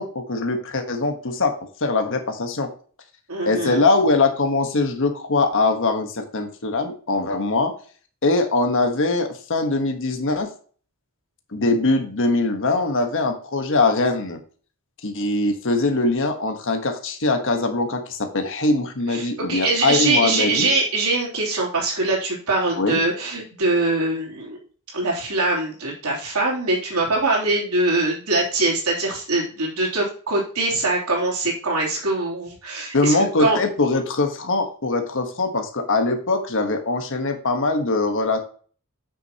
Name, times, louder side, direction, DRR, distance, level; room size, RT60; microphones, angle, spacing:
voice 1, 0.0-1.5 1.8-2.7 3.4-7.7 8.2-10.5 11.5-14.4 15.0-20.7 22.8-23.0 32.9-38.4, left 3 dB, 60° left, 5 dB, 1.3 m, -22 dB
voice 2, 3.3-3.8 19.1-24.6 24.9-33.6, right 2 dB, 80° right, -3 dB, 3.3 m, -23 dB
8.6 x 6.5 x 2.9 m, 0.42 s
head